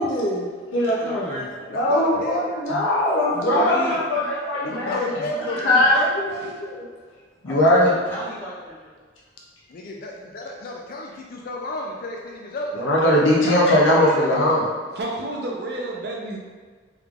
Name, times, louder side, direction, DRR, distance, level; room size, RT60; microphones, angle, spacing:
voice 1, 0.0-1.4 1.7-5.0 5.5-6.9 7.4-7.9 12.7-14.6, left 1 dB, 85° left, -4 dB, 0.7 m, -20 dB
voice 2, 0.8-1.4 3.4-4.0 7.5-9.0, equal, 10° left, -9 dB, 0.9 m, -34 dB
voice 3, 1.7-2.5 4.6-6.1 9.7-12.7 13.4-13.8 14.2-14.6, left 2 dB, 50° left, 0 dB, 0.3 m, -32 dB
voice 4, 14.9-16.4, right 2 dB, 55° right, -1 dB, 0.6 m, -31 dB
3.6 x 3.2 x 2.4 m, 1.5 s
head